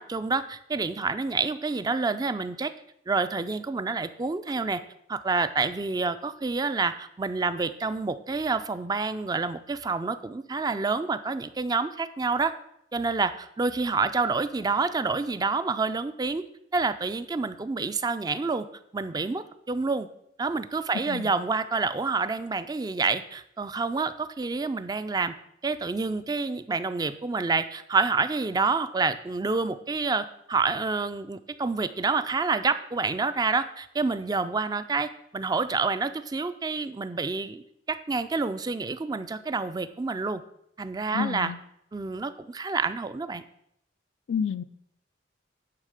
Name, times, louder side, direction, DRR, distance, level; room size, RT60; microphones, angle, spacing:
voice 1, 0.0-2.7 3.1-4.8 5.1-12.5 12.9-16.4 16.7-18.7 18.9-20.1 20.4-25.3 25.6-40.4 40.8-41.5 41.9-43.4, right 4 dB, 20° right, 12 dB, 0.3 m, -28 dB
voice 2, 41.1-41.6 44.3-44.6, left 7 dB, 75° left, 14 dB, 0.4 m, -29 dB
9.8 x 3.7 x 6.5 m, 0.74 s
head